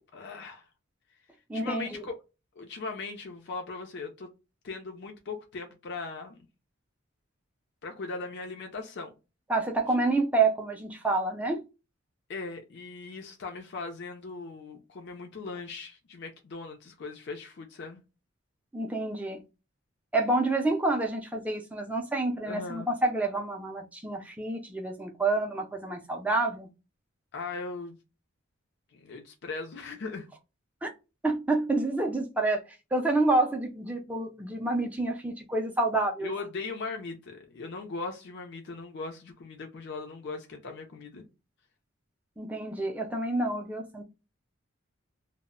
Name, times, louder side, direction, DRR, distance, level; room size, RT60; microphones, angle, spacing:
voice 1, 0.1-0.6 1.5-2.1 2.6-4.3 4.6-6.4 7.8-9.1 12.3-18.0 22.4-22.9 27.3-28.0 28.9-30.3 36.2-41.2, left 3 dB, 55° left, 0.4 m, -39 dB
voice 2, 1.5-2.0 9.5-11.6 18.7-19.4 20.1-26.7 30.8-30.9 31.2-32.6 32.9-36.3 42.4-44.0, right 2 dB, 5° right, 0.3 m, -28 dB
2.0 x 2.0 x 3.6 m
head